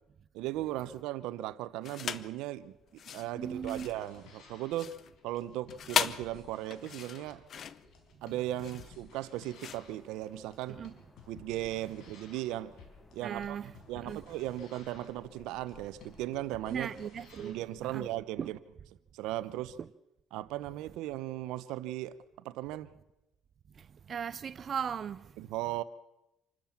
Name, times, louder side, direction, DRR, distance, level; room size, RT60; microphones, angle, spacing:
voice 1, 0.3-2.7 3.1-4.9 5.2-7.4 8.2-10.8 11.3-12.7 13.1-13.6 13.9-16.9 17.4-18.6 19.1-19.8 20.3-22.2 22.4-22.9 25.4-25.8, right 14 dB, 85° right, 0.9 m, -37 dB
sound 1, 1.8-2.4 2.9-10.7, left 8 dB, 50° left, 0.8 m, -38 dB
voice 2, 3.3-3.9 10.7-11.0 13.2-14.2 16.7-18.1 18.4-18.5 19.8-19.9 23.7-25.5, right 7 dB, 40° right, 0.6 m, -38 dB
sound 2, 3.4-17.5, left 5 dB, 65° left, 5.4 m, -56 dB
sound 3, 9.8-16.3, left 2 dB, 20° left, 2.2 m, -60 dB
27.0 x 13.0 x 7.3 m
cardioid pair, 115°, 0 cm